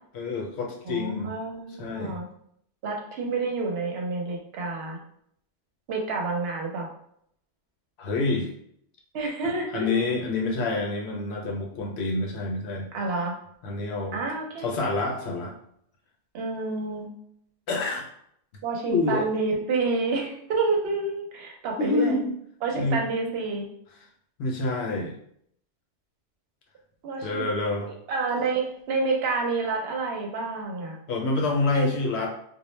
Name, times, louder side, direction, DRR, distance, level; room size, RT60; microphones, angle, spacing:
voice 1, 0.1-1.3 1.8-2.2 8.0-8.5 9.7-12.9 13.6-14.2 14.6-15.5 17.7-18.1 18.9-19.3 21.8-22.3 22.8-23.0 24.4-25.1 27.2-27.9 31.1-32.3, left 3 dB, 70° left, 1 dB, 0.8 m, -27 dB
voice 2, 0.9-2.3 2.8-5.0 5.9-6.9 9.1-10.1 12.9-13.3 14.1-14.6 16.3-17.1 18.6-22.2 22.6-23.7 27.0-27.5 27.9-31.0 31.7-31.9 32.2-32.3, right 3 dB, 65° right, 0 dB, 0.8 m, -29 dB
2.1 x 2.0 x 3.1 m, 0.68 s
omnidirectional pair, 1.2 m